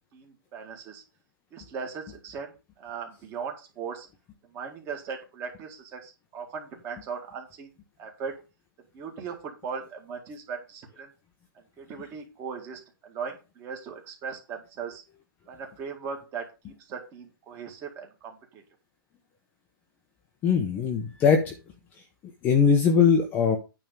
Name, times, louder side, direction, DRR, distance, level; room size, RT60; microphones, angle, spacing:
voice 1, 0.1-1.0 1.5-4.1 4.4-7.7 8.0-8.4 8.9-11.1 11.5-15.0 15.5-18.6, right 6 dB, 20° right, 2 dB, 1.9 m, -38 dB
voice 2, 20.4-21.5 22.4-23.6, left 6 dB, 15° left, 3 dB, 0.8 m, -21 dB
9.3 x 3.6 x 6.7 m, 0.29 s
hypercardioid pair, 165°, 12 cm